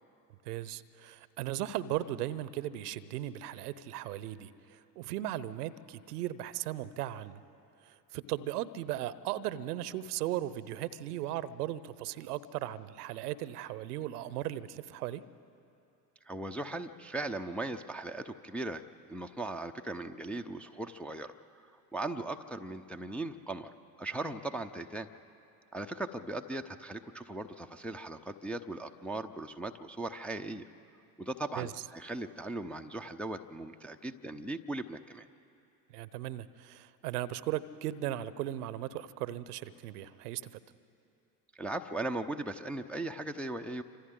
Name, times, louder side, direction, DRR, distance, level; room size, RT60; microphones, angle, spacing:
voice 1, 0.4-7.4 7.8-15.2 31.6-31.7 35.9-40.6, right 13 dB, 70° right, 17 dB, 0.8 m, -37 dB
voice 2, 16.3-18.8 19.1-21.3 21.9-23.7 24.0-25.1 25.7-30.6 31.2-35.3 41.5-43.8, right 2 dB, 5° left, 3 dB, 0.5 m, -38 dB
28.5 x 25.5 x 3.8 m, 2.7 s
figure-of-eight pair, 65°, 49 cm